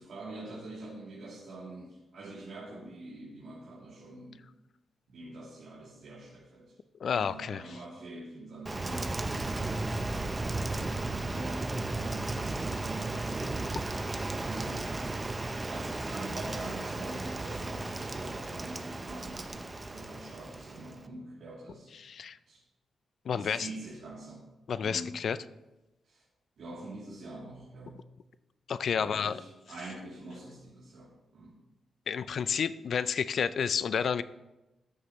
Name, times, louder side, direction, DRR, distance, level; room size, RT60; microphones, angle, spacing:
voice 1, 0.0-4.4 5.1-6.8 7.0-10.0 10.7-13.8 14.4-14.9 15.5-21.9 22.5-22.6 23.3-24.4 24.8-25.2 26.0-26.2 26.6-28.0 28.9-31.5, right 2 dB, 70° right, -7 dB, 2.7 m, -45 dB
voice 2, 7.0-7.6 22.0-22.4 23.3-23.7 24.7-25.4 28.7-29.4 32.1-34.2, left 7 dB, 60° left, 15 dB, 0.3 m, -30 dB
Rain, 8.7-21.1, right 2 dB, 20° right, 0.6 m, -35 dB
14.5 x 6.5 x 3.0 m, 1.0 s
cardioid pair, 120°, 0 cm